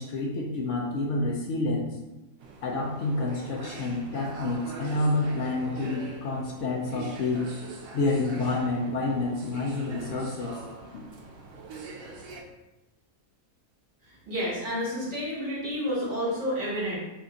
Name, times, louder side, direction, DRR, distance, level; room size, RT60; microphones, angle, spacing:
voice 1, 0.0-2.0 2.6-7.5 7.9-10.6, left 2 dB, 65° left, -1 dB, 0.7 m, -28 dB
sound 1, 2.4-12.4, right 3 dB, 65° right, 1.0 m, -43 dB
voice 2, 14.0-17.0, equal, 50° right, -7 dB, 1.5 m, -30 dB
3.5 x 2.4 x 3.9 m, 0.99 s
omnidirectional pair, 1.7 m